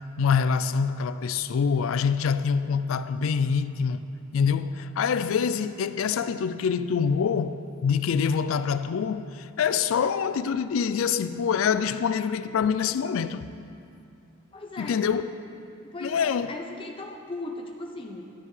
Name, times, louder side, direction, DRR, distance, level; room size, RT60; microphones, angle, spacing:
voice 1, 0.2-4.0 4.3-13.5 14.8-15.3 16.0-16.5, left 6 dB, 85° left, 0.4 m, -25 dB
voice 2, 14.5-15.0 15.9-18.3, left 2 dB, 25° left, 0.7 m, -38 dB
12.5 x 9.3 x 3.2 m
head